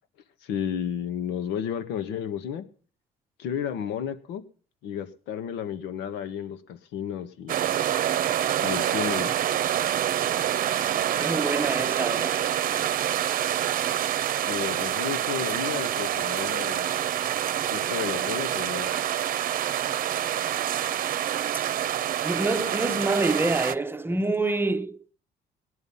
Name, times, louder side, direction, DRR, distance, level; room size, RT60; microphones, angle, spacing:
voice 1, 0.4-2.6 3.4-4.4 4.8-7.6 8.6-9.3 14.5-16.9 17.7-18.9, left 8 dB, 85° left, 1.7 m, -32 dB
sound 1, 7.5-23.7, right 11 dB, 55° right, 0.8 m, -27 dB
voice 2, 11.2-12.5 22.2-25.1, right 2 dB, 15° right, 1.0 m, -27 dB
18.0 x 10.5 x 5.7 m
cardioid pair, 110°, 17 cm